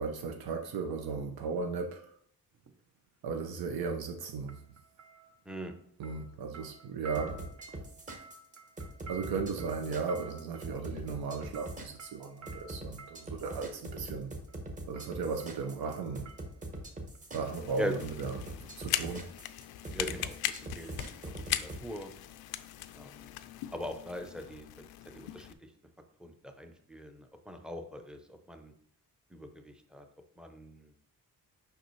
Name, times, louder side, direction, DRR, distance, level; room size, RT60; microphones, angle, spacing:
voice 1, 0.0-2.1 3.2-4.6 6.0-7.5 9.1-14.3 14.9-16.3 17.3-19.3, right 5 dB, 85° right, 4 dB, 0.7 m, -36 dB
sound 1, 2.5-2.8 4.5-5.8 6.0-13.7 14.5-14.7 15.0-16.9 17.2-17.3, right 4 dB, 50° right, 0.7 m, -52 dB
sound 2, 7.1-21.8, right 1 dB, 20° right, 0.9 m, -43 dB
sound 3, 17.4-25.5, left 12 dB, 90° left, 0.5 m, -39 dB
voice 2, 19.9-22.1 22.9-23.3 23.7-24.7 25.0-25.7 26.2-28.7 29.3-30.1 30.4-30.9, equal, ahead, 5 dB, 0.6 m, -41 dB
6.8 x 5.4 x 3.1 m, 0.66 s
cardioid pair, 140°, 36 cm